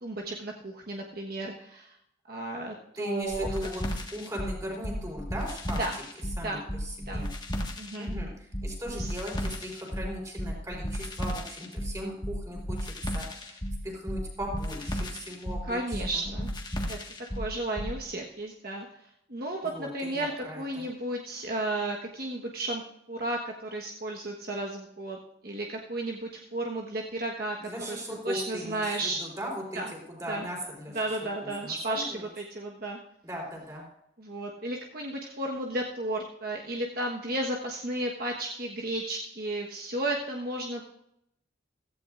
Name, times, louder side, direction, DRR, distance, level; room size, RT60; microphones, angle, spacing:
voice 1, 0.0-1.9 2.3-3.5 5.8-6.0 6.4-6.6 7.1-7.2 7.8-8.1 8.9-9.1 15.6-16.5 16.9-17.0 17.4-22.8 23.1-28.0 28.2-29.2 29.7-29.9 30.3-30.5 30.9-33.0 34.2-40.8, right 1 dB, 50° right, 0 dB, 1.3 m, -33 dB
voice 2, 3.0-6.0 6.4-7.3 8.0-13.6 13.8-16.2 19.6-20.9 27.6-31.0 31.4-32.3 33.2-33.9, equal, 15° right, -1 dB, 4.0 m, -38 dB
sound 1, 3.3-18.0, equal, 20° left, 1.6 m, -34 dB
16.5 x 15.0 x 2.5 m, 0.77 s
head